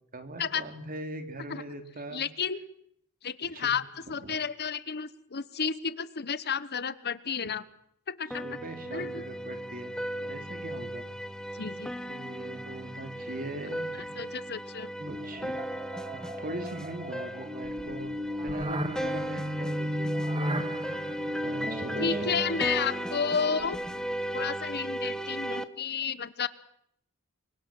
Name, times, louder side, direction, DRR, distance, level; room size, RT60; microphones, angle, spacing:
voice 1, 0.1-2.2 3.4-3.8 4.2-4.4 8.4-9.9 10.2-11.0 12.1-14.4 15.0-15.6 16.2-18.1 18.4-20.1 20.7-20.8 21.3-22.3, right 1 dB, 40° right, 7 dB, 3.3 m, -41 dB
voice 2, 2.1-2.6 3.2-3.8 4.1-7.7 8.1-8.6 8.9-9.2 11.6-11.9 14.2-14.9 22.0-23.8 24.3-26.5, left 6 dB, 50° left, 15 dB, 1.2 m, -31 dB
sound 1, 8.3-25.6, right 1 dB, 5° left, 1.3 m, -36 dB
sound 2, 15.0-24.1, equal, 25° right, 2.2 m, -35 dB
28.0 x 24.5 x 7.7 m, 0.71 s
head